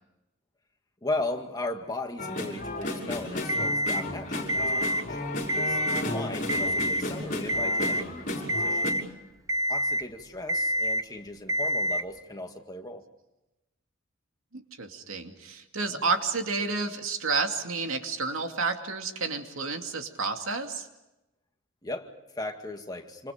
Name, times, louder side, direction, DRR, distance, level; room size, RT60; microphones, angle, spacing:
voice 1, 1.0-5.2 5.5-8.9 9.7-13.0 15.9-16.0 21.8-23.3, left 2 dB, 20° left, 3 dB, 2.2 m, -37 dB
sound 1, 2.2-8.9, left 1 dB, 40° left, 5.8 m, -33 dB
Alarm, 3.5-4.0 4.5-5.0 5.4-6.0 6.5-7.0 7.5-8.0 8.5-9.0 9.5-10.0 10.5-11.0 11.5-12.0, equal, 15° right, 0.9 m, -27 dB
voice 2, 14.5-20.9, right 4 dB, 85° right, 5 dB, 2.5 m, -30 dB
28.5 x 26.5 x 5.2 m, 0.95 s
head